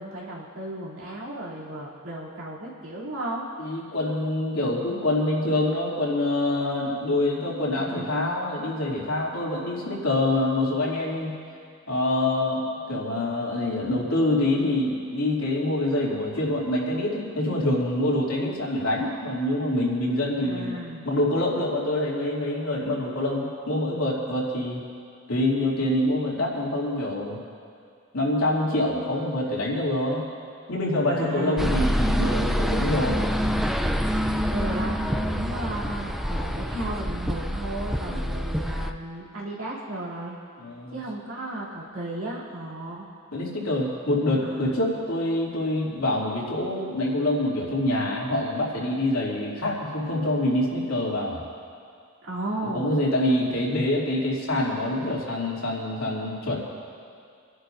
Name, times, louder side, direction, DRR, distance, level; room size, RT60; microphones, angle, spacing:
voice 1, 0.0-3.4 7.8-8.4 20.4-21.1 31.1-31.9 34.5-40.4 40.9-43.1 44.4-44.8 52.2-53.1, right 1 dB, 90° right, -6 dB, 3.1 m, -34 dB
voice 2, 3.6-11.4 11.9-20.8 21.0-24.8 25.3-27.4 28.1-30.3 30.7-33.2 38.1-38.4 40.6-41.0 43.3-51.4 52.6-56.6, left 1 dB, 75° left, -5 dB, 2.8 m, -26 dB
sound 1, 31.6-38.9, equal, ahead, 0.4 m, -26 dB
27.5 x 11.0 x 2.7 m, 2.3 s
head